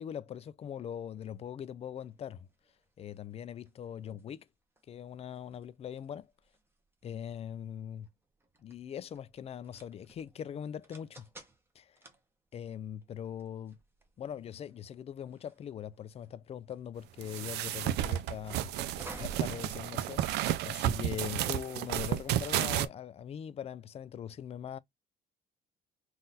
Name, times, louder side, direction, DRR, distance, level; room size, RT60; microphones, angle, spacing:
voice 1, 0.0-2.5 3.0-4.5 4.9-6.3 7.0-8.1 8.6-11.3 11.8-12.0 12.5-13.8 14.2-24.8, left 9 dB, 35° left, 0.4 m, -41 dB
sound 1, 1.1-20.5, right 2 dB, 15° right, 1.0 m, -56 dB
sound 2, 17.2-22.9, right 13 dB, 80° right, 0.4 m, -32 dB
3.8 x 2.5 x 3.9 m
cardioid pair, 110°, 17 cm